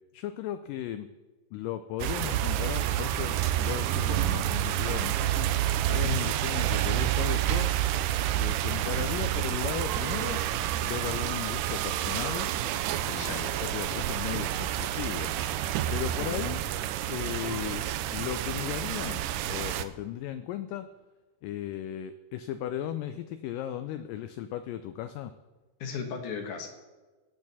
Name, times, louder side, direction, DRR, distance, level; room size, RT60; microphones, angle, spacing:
voice 1, 0.1-1.1 1.5-5.5 5.9-7.7 8.3-10.4 10.8-12.5 13.0-15.3 15.9-16.6 17.1-20.9 21.4-25.3, left 11 dB, 85° left, 10 dB, 1.9 m, -36 dB
sound 1, 2.0-19.8, right 12 dB, 90° right, 1.8 m, -29 dB
voice 2, 5.9-6.2 13.1-13.4 16.2-16.5 25.8-26.7, left 6 dB, 65° left, 4 dB, 2.5 m, -36 dB
16.5 x 8.6 x 4.1 m, 1.3 s
omnidirectional pair, 4.3 m